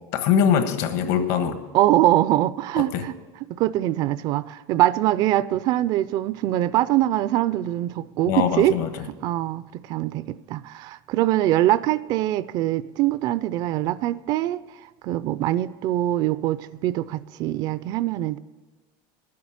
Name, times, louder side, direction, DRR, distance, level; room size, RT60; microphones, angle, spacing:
voice 1, 0.1-1.6 2.8-3.0 8.3-9.1, left 8 dB, 60° left, 9 dB, 1.3 m, -22 dB
voice 2, 1.7-3.1 3.5-8.7 9.2-14.6 15.0-18.4, right 14 dB, 40° right, 16 dB, 0.3 m, -23 dB
12.0 x 9.4 x 7.3 m, 1.4 s
cardioid pair, 165°, 11 cm